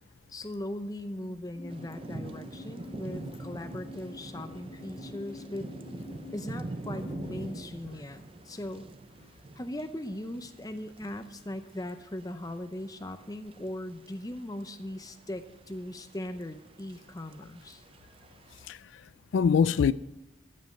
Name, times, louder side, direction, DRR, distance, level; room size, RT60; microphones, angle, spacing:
voice 1, 0.3-5.7 6.3-8.9 9.5-17.8, left 1 dB, 20° left, 0.6 m, -39 dB
sound 1, 1.5-7.6, left 2 dB, 40° left, 1.0 m, -47 dB
Thunder / Rain, 1.7-18.7, right 2 dB, 30° right, 0.4 m, -45 dB
voice 2, 18.6-19.9, left 6 dB, 85° left, 0.3 m, -25 dB
15.0 x 5.3 x 7.7 m
head